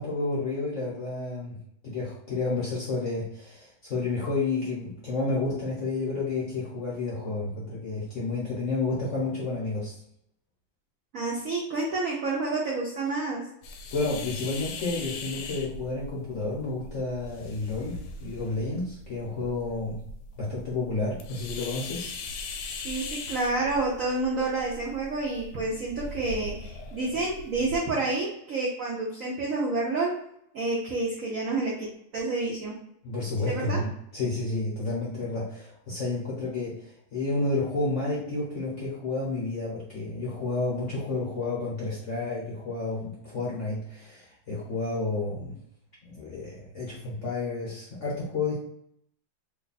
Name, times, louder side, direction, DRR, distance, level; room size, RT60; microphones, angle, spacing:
voice 1, 0.0-1.6 1.8-10.0 13.9-20.0 20.4-22.1 33.0-45.6 46.0-48.6, left 3 dB, 55° left, -5 dB, 0.8 m, -31 dB
voice 2, 11.1-13.4 22.8-30.1 30.5-31.9 32.1-32.7 33.5-33.8, right 3 dB, 85° right, -3 dB, 0.7 m, -29 dB
sound 1, 13.6-27.8, left 3 dB, 80° left, 1.4 m, -40 dB
3.3 x 2.2 x 4.0 m, 0.73 s
omnidirectional pair, 2.4 m